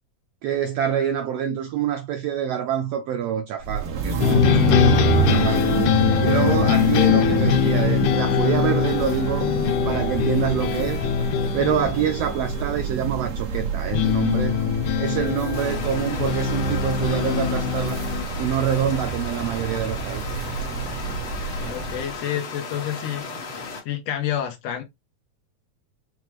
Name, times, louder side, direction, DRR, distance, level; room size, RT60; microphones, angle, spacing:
voice 1, 0.4-5.8 6.2-9.5 9.8-11.1 11.5-14.6 15.0-18.0 18.4-20.4, right 9 dB, 90° right, 1.4 m, -26 dB
sound 1, 3.6-22.2, right 6 dB, 55° right, 1.9 m, -28 dB
sound 2, 4.2-12.7 13.9-18.2, left 8 dB, 85° left, 2.2 m, -22 dB
sound 3, 15.5-23.8, left 4 dB, 55° left, 1.8 m, -35 dB
voice 2, 21.7-23.6 23.9-24.8, left 10 dB, 70° left, 1.8 m, -29 dB
6.0 x 2.4 x 3.1 m
omnidirectional pair, 3.4 m